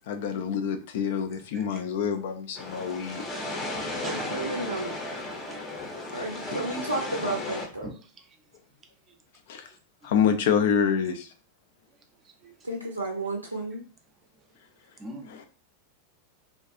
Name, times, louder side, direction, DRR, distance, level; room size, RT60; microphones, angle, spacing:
voice 1, 0.1-3.2 9.5-9.7 10.0-11.3, left 7 dB, 55° left, 0.4 m, -26 dB
voice 2, 1.3-1.9 4.0-5.0 5.4-5.6 7.8-8.4 9.1-9.2 9.7-9.8 10.0-10.1 12.1-12.5 14.4-14.5 15.0-15.4, right 1 dB, 25° right, 0.5 m, -45 dB
sound 1, 2.6-7.7, left 2 dB, 20° left, 0.7 m, -35 dB
voice 3, 4.0-5.0 6.1-7.9 12.6-13.8, right 2 dB, 85° right, 0.4 m, -32 dB
2.5 x 2.3 x 2.6 m
figure-of-eight pair, 90°, 0 cm